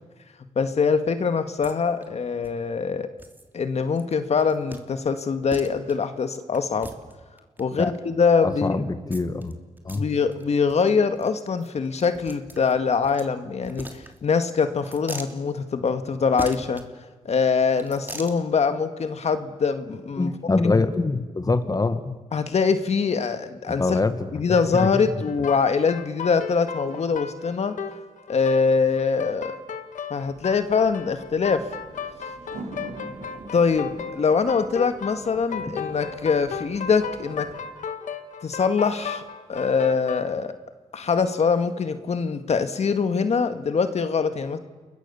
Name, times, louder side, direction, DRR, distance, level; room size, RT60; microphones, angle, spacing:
voice 1, 0.6-3.1 3.5-6.9 7.6-8.8 9.9-16.8 17.3-20.3 22.3-24.0 24.3-27.7 28.3-29.6 30.1-31.7 33.5-37.5 38.4-39.2 39.5-40.5 40.9-44.6, left 5 dB, 60° left, 8 dB, 2.0 m, -23 dB
sound 1, 1.6-1.7 2.0-2.1 2.4-2.5 3.2-3.5 3.9-4.1 4.4-4.8 5.2-5.3 5.5-5.9 6.5-7.8 9.1-9.5 9.8-10.0 10.3-10.4 10.7-10.9 11.2-11.3 11.6-13.3 13.6-14.4 14.8-15.3 16.4-16.8 17.7-18.4, right 1 dB, 15° right, 3.1 m, -40 dB
voice 2, 8.4-9.6 9.9-10.1 20.2-22.1 23.8-24.1 24.4-25.0, left 3 dB, 30° left, 10 dB, 1.9 m, -24 dB
sound 2, 24.5-40.2, left 6 dB, 80° left, 1.9 m, -35 dB
sound 3, 30.3-37.7, right 3 dB, 75° right, 3.9 m, -44 dB
30.0 x 22.0 x 7.1 m, 1.3 s
cardioid pair, 80°, 13 cm